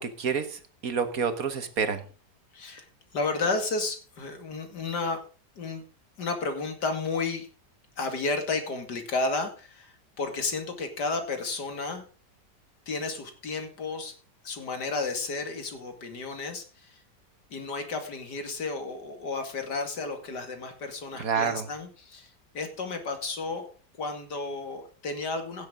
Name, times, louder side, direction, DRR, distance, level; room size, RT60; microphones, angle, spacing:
voice 1, 0.0-2.0 21.2-21.7, right 6 dB, 55° right, 10 dB, 1.5 m, -29 dB
voice 2, 2.5-2.9 3.1-5.2 5.6-5.8 6.2-7.5 8.0-12.0 12.9-14.1 14.4-17.0 17.5-22.3 22.5-23.7 24.0-25.7, left 3 dB, 70° left, 6 dB, 2.8 m, -32 dB
17.0 x 7.6 x 3.8 m, 0.39 s
omnidirectional pair, 1.9 m